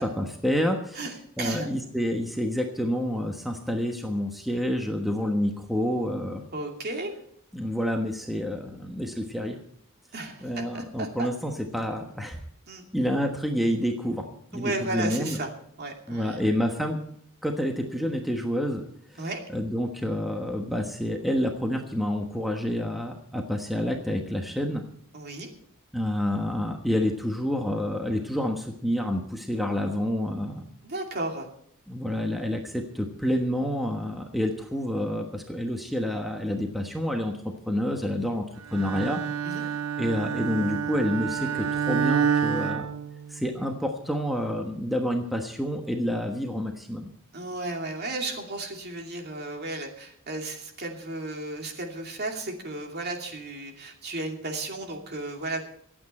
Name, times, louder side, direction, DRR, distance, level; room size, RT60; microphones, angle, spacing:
voice 1, 0.0-1.0 1.4-6.4 7.5-9.6 10.4-12.4 12.9-15.4 16.1-17.0 17.4-18.8 19.1-19.3 19.5-24.8 25.9-30.6 31.9-38.5 38.7-39.2 39.5-42.9 43.3-47.1, equal, ahead, 2 dB, 1.2 m, -28 dB
voice 2, 0.9-1.7 6.5-7.1 10.1-11.3 12.7-12.8 14.5-15.5 15.8-16.4 19.2-19.4 25.1-25.5 30.8-31.5 39.4-39.7 47.3-55.6, right 2 dB, 50° right, 2 dB, 2.6 m, -34 dB
Bowed string instrument, 38.7-43.7, right 7 dB, 85° right, 0.7 m, -28 dB
25.0 x 8.8 x 4.4 m, 0.67 s
head